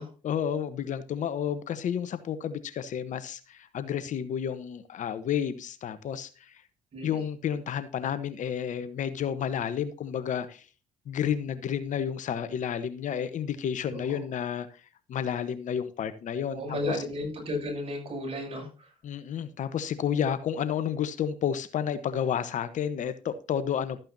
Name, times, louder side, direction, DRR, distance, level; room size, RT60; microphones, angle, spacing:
voice 1, 0.2-6.5 7.0-10.6 11.1-14.7 15.1-17.0 19.0-24.0, left 8 dB, 60° left, 1.0 m, -31 dB
voice 2, 6.9-7.2 13.9-14.2 16.5-18.9 20.1-20.2, left 1 dB, 40° right, 6.6 m, -34 dB
13.0 x 8.9 x 2.7 m
supercardioid pair, 65°, 14 cm